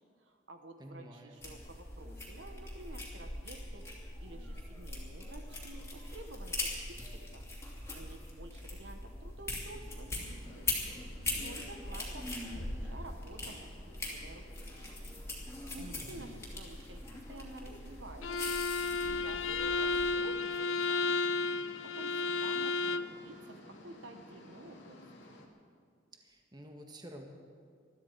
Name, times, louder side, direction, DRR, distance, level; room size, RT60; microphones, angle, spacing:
voice 1, 0.0-3.9 4.2-7.5 7.9-11.0 11.4-14.8 15.7-20.5 20.9-21.2 21.8-25.0, right 2 dB, 70° right, 6 dB, 1.2 m, -51 dB
voice 2, 0.8-1.4 15.8-16.2 26.2-27.3, equal, 20° right, 3 dB, 1.4 m, -50 dB
sound 1, 1.4-20.1, left 2 dB, 15° left, 2.6 m, -41 dB
sound 2, 10.1-25.5, left 1 dB, 70° left, 2.1 m, -56 dB
Bowed string instrument, 18.2-23.2, left 4 dB, 90° left, 0.6 m, -32 dB
21.0 x 13.0 x 4.7 m, 2.1 s
head